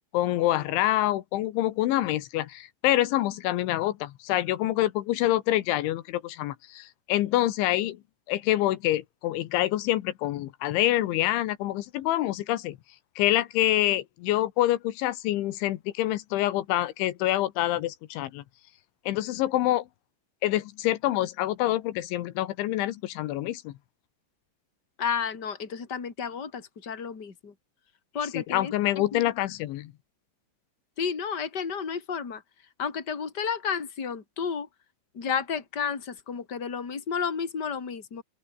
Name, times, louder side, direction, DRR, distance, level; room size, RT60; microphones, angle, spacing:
voice 1, 0.1-8.0 8.3-12.8 13.2-18.4 19.1-19.9 20.4-23.7 28.3-29.9, left 15 dB, 85° left, 3.6 m, -26 dB
voice 2, 25.0-27.5 28.1-28.7 29.1-29.2 31.0-32.4 32.8-34.7 35.1-38.2, left 6 dB, 25° left, 3.3 m, -31 dB
open air
omnidirectional pair, 5.3 m